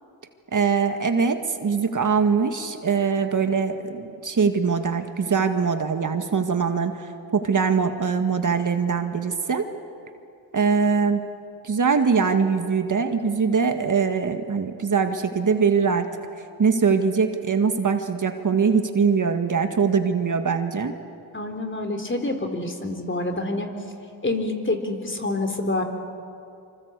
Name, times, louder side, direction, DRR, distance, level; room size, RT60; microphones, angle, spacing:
voice 1, 0.5-9.7 10.5-11.2 11.6-16.1 16.6-20.9, right 5 dB, 50° right, 7 dB, 1.9 m, -22 dB
voice 2, 21.3-23.7 24.2-25.8, left 2 dB, 30° left, 5 dB, 3.9 m, -27 dB
25.5 x 25.0 x 8.3 m, 2.6 s
cardioid pair, 60°, 41 cm